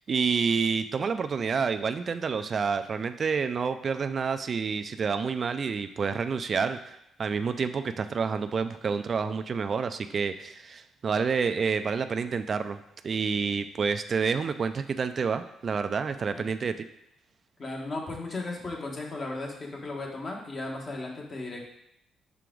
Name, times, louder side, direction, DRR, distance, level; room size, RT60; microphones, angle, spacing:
voice 1, 0.1-12.8 13.0-16.8, right 5 dB, 45° right, 9 dB, 0.3 m, -28 dB
voice 2, 17.6-21.8, left 2 dB, 40° left, 0 dB, 1.4 m, -36 dB
5.9 x 4.6 x 3.8 m, 0.79 s
cardioid pair, 90°, 0 cm